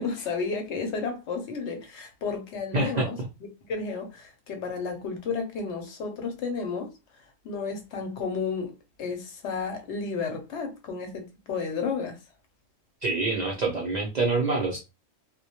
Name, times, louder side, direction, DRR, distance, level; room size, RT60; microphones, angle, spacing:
voice 1, 0.0-3.2 3.7-6.9 7.4-12.2, left 5 dB, 65° left, 0.8 m, -32 dB
voice 2, 2.7-3.1 13.0-14.8, right 3 dB, 70° right, 0.4 m, -26 dB
2.1 x 2.1 x 2.8 m
omnidirectional pair, 1.4 m